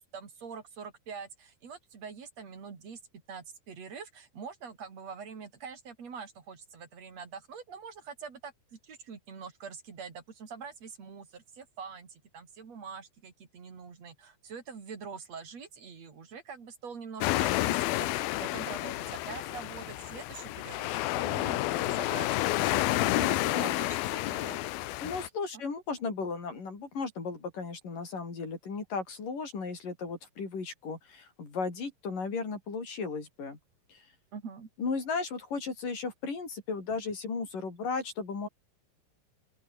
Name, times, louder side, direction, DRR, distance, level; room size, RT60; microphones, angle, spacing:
voice 1, 0.0-3.0 3.3-24.6 34.3-34.7, right 6 dB, 45° right, 4.5 m, -45 dB
sound 1, 17.2-25.3, left 18 dB, 90° left, 2.7 m, -30 dB
voice 2, 23.1-23.8 25.0-33.6 33.9-34.0 34.8-38.5, left 4 dB, 65° left, 7.4 m, -35 dB
open air
omnidirectional pair, 4.2 m